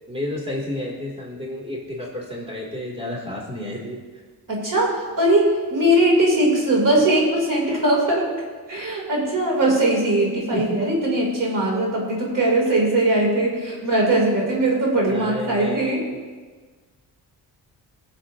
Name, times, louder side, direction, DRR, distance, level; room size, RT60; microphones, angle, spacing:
voice 1, 0.1-4.2 10.5-10.8 15.1-16.2, left 1 dB, 15° right, -3 dB, 2.7 m, -31 dB
voice 2, 4.5-8.3 8.7-16.0, right 1 dB, 50° right, -2 dB, 3.1 m, -20 dB
20.0 x 7.1 x 2.8 m, 1.4 s
cardioid pair, 90°, 41 cm